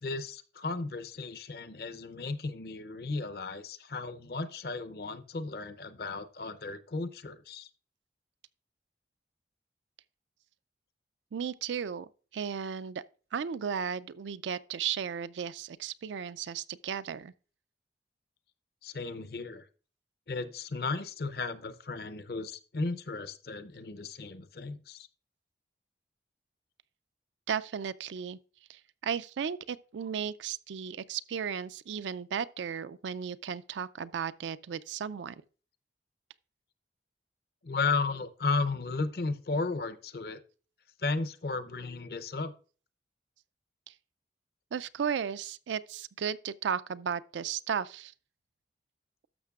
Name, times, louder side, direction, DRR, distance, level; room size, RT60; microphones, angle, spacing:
voice 1, 0.0-7.7 18.8-19.7 20.3-25.1 37.6-40.4 41.0-42.5, left 3 dB, 60° left, 0.6 m, -34 dB
voice 2, 11.3-12.1 12.3-13.0 13.3-17.3 27.5-28.4 28.7-35.4 44.7-48.1, right 7 dB, 90° right, 0.4 m, -35 dB
12.0 x 6.6 x 2.4 m
head